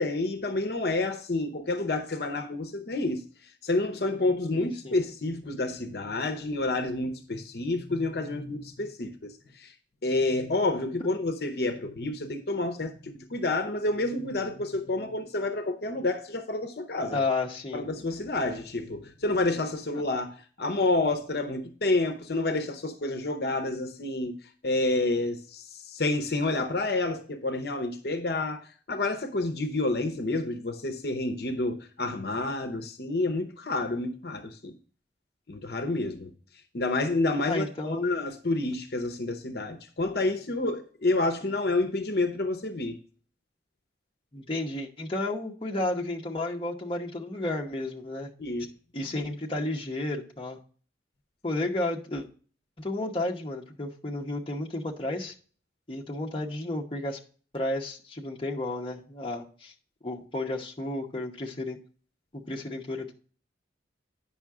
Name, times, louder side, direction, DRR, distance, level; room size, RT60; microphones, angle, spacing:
voice 1, 0.0-3.2 3.6-9.7 10.0-17.2 17.7-24.4 24.6-34.8 35.5-36.3 36.7-43.0 48.4-48.7, left 2 dB, 60° left, 0.8 m, -29 dB
voice 2, 4.5-5.0 17.1-17.9 37.5-38.1 44.3-48.3 48.9-50.6 51.4-52.3 52.8-55.3 55.9-57.2 57.5-59.7 60.0-61.8 62.3-63.1, left 2 dB, 30° left, 0.9 m, -32 dB
8.8 x 5.7 x 3.6 m
head